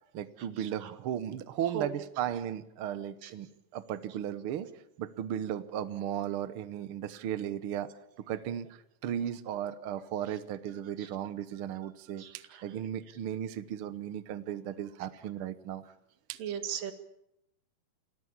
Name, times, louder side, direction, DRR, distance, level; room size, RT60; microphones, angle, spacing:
voice 1, 0.0-4.7 5.0-7.9 8.2-15.8 16.3-16.6, right 10 dB, 65° right, 13 dB, 1.4 m, -36 dB
voice 2, 16.4-16.9, right 9 dB, 85° right, 10 dB, 3.4 m, -35 dB
29.0 x 14.0 x 8.7 m, 0.80 s
omnidirectional pair, 3.8 m